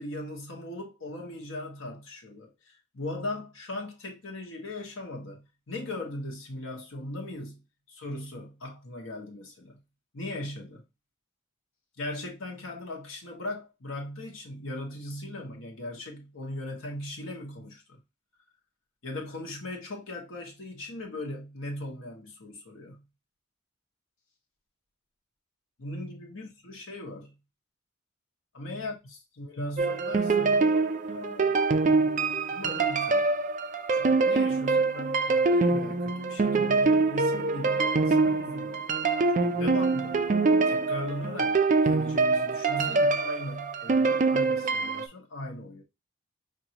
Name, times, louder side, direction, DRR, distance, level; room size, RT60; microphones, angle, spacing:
voice 1, 0.0-7.6 7.9-9.8 10.1-10.8 12.0-18.0 19.0-23.0 25.8-27.3 28.5-30.8 31.1-32.0 32.5-33.3 33.9-38.9 39.3-40.3 40.7-41.6 41.8-45.8, left 1 dB, 80° left, 1.1 m, -39 dB
sound 1, 29.8-45.1, right 3 dB, 40° right, 0.4 m, -25 dB
5.2 x 2.6 x 2.8 m
head